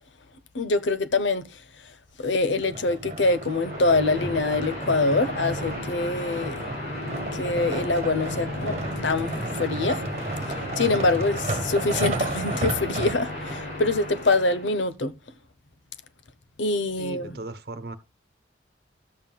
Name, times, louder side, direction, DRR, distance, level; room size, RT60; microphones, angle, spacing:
voice 1, 0.5-1.6 2.2-6.6 7.3-8.8 9.0-10.0 10.5-15.1 16.6-17.4, left 3 dB, 80° left, 0.8 m, -25 dB
sound 1, 2.6-13.6 14.2-14.3, right 2 dB, 35° right, 1.4 m, -33 dB
sound 2, 3.3-14.8, left 1 dB, 60° left, 7.0 m, -35 dB
voice 2, 17.0-18.0, right 2 dB, 55° right, 1.0 m, -37 dB
13.0 x 7.4 x 2.3 m
head